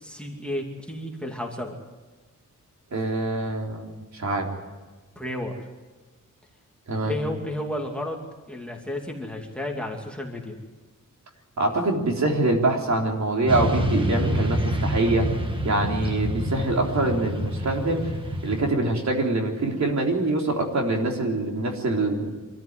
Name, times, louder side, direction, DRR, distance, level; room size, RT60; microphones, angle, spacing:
voice 1, 0.0-1.8 5.2-5.7 7.0-8.2 8.5-10.6, left 1 dB, 5° left, 1 dB, 2.6 m, -32 dB
voice 2, 2.9-3.9 4.1-4.5 6.9-7.1 11.6-15.3 15.6-18.1 18.4-22.3, right 2 dB, 60° right, 1 dB, 3.7 m, -24 dB
Motorcycle / Traffic noise roadway noise, 13.5-18.7, right 1 dB, 15° right, 1.6 m, -27 dB
25.5 x 14.0 x 9.6 m, 1.3 s
wide cardioid pair, 175°, 32 cm